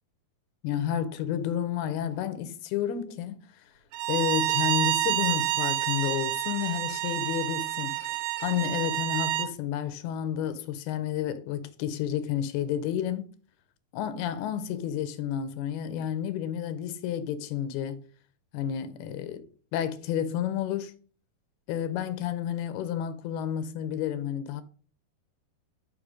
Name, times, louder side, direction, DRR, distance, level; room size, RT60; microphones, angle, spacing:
voice 1, 0.6-3.6 4.1-8.0 8.4-13.3 13.9-18.0 18.5-19.5 19.7-20.9 21.7-24.6, left 10 dB, 90° left, 2.7 m, -31 dB
Bowed string instrument, 3.9-9.5, right 15 dB, 90° right, 2.6 m, -28 dB
6.5 x 5.3 x 4.8 m
omnidirectional pair, 4.6 m